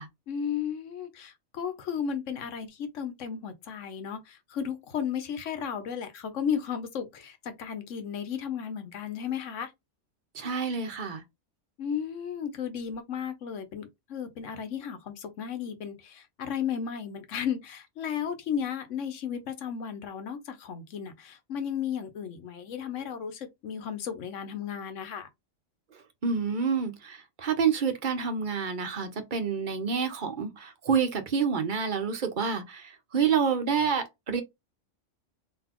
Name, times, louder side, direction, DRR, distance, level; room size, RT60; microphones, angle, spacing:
voice 1, 0.3-9.7 11.8-25.3, left 8 dB, 85° left, 1.2 m, -34 dB
voice 2, 10.3-11.2 26.2-34.4, right 6 dB, 45° right, 0.9 m, -28 dB
3.9 x 2.9 x 3.0 m
omnidirectional pair, 1.2 m